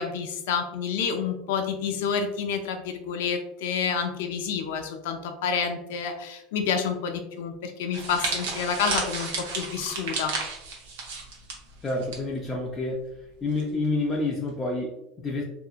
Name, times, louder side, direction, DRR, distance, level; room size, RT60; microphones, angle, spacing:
voice 1, 0.0-10.3, left 6 dB, 80° left, 5 dB, 0.5 m, -29 dB
sound 1, 7.9-12.2 12.5-12.7 13.6-13.9, right 4 dB, 85° right, 0.8 m, -32 dB
voice 2, 11.8-13.0 13.4-15.4, left 2 dB, 20° left, -3 dB, 0.4 m, -28 dB
2.8 x 2.6 x 2.4 m, 0.86 s
supercardioid pair, 125°, 0 cm